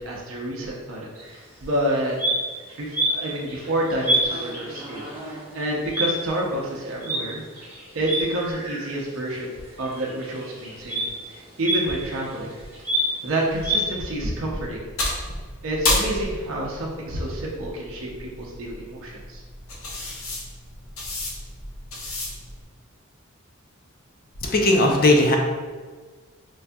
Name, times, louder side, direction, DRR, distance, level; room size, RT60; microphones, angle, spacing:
voice 1, 0.0-2.2 2.8-7.7 7.9-12.5 13.2-14.8 15.6-19.4, right 1 dB, 75° right, -3 dB, 0.6 m, -29 dB
sound 1, 1.1-1.3 1.8-9.1 9.4-13.8, right 1 dB, 10° right, 1.4 m, -28 dB
sound 2, 13.5-22.6, left 2 dB, 80° left, 0.7 m, -32 dB
voice 2, 24.4-25.4, left 2 dB, 45° left, 2 dB, 0.5 m, -17 dB
4.6 x 2.6 x 2.2 m, 1.4 s
head